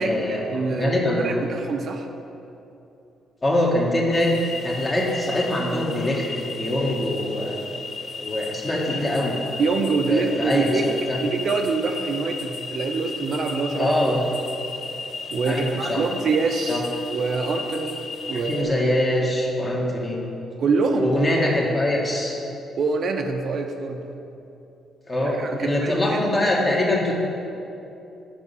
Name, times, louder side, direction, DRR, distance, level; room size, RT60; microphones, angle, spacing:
voice 1, 0.0-1.4 3.4-7.6 8.2-9.4 10.1-11.2 13.7-14.2 15.4-16.0 16.7-16.8 18.3-20.2 21.0-22.4 25.1-27.1, left 1 dB, 30° left, -2 dB, 1.3 m, -23 dB
voice 2, 0.5-2.1 9.6-10.9 11.2-13.9 15.3-16.8 17.1-18.0 18.3-18.9 20.6-21.4 22.8-24.1 25.2-26.2, right 4 dB, 55° right, 5 dB, 0.5 m, -25 dB
sound 1, 4.1-18.6, left 4 dB, 50° left, 0.5 m, -35 dB
6.1 x 4.9 x 5.5 m, 2.8 s
cardioid pair, 90°, 0 cm